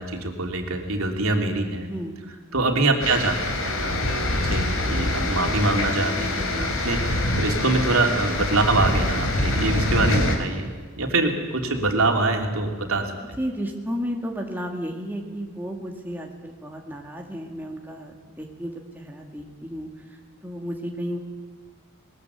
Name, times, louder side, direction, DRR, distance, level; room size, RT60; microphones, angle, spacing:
voice 1, 0.0-1.9 2.5-3.3 3.6-10.6 11.0-13.1, right 2 dB, 80° right, 3 dB, 3.0 m, -24 dB
sound 1, 3.0-10.4, left 1 dB, 80° left, 3.6 m, -25 dB
voice 2, 13.4-21.2, equal, 10° right, 1 dB, 2.1 m, -33 dB
21.0 x 20.5 x 8.3 m, 1.5 s
head